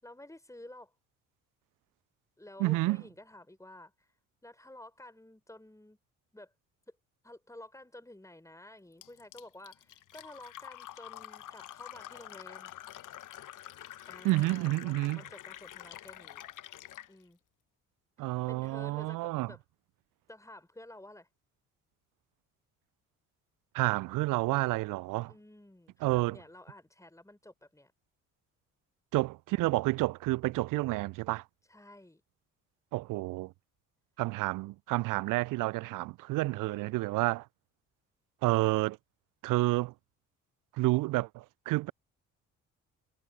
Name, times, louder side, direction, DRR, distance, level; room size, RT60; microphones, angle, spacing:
voice 1, 0.0-0.9 2.4-4.1 4.4-6.0 6.3-6.5 7.2-12.7 14.1-16.4 17.1-17.4 18.2-19.6 20.3-21.3 25.3-27.9 31.7-32.2 36.5-37.0, left 1 dB, 10° left, 5.7 m, -52 dB
voice 2, 2.6-3.0 14.2-15.2 18.2-19.5 23.7-25.3 26.0-26.4 29.1-31.4 32.9-33.5 34.2-37.5 38.4-39.0 39.4-39.9 40.8-41.9, right 20 dB, 55° right, 0.5 m, -29 dB
Fill (with liquid), 9.0-17.1, left 13 dB, 50° left, 1.2 m, -47 dB
figure-of-eight pair, 50°, 40 cm